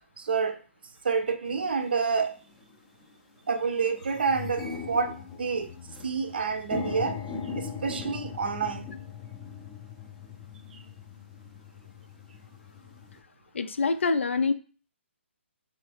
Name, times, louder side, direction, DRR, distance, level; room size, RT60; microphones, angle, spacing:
voice 1, 0.2-0.6 1.0-2.3 3.5-5.7 6.0-7.2 7.5-8.9, right 5 dB, 50° right, 0.5 m, -28 dB
sound 1, 1.6-1.7 2.5-2.7 3.1-3.2 3.5-13.2, left 5 dB, 10° left, 0.5 m, -39 dB
voice 2, 13.5-14.5, left 4 dB, 70° left, 0.5 m, -25 dB
3.9 x 3.3 x 3.4 m
hypercardioid pair, 175°, 7 cm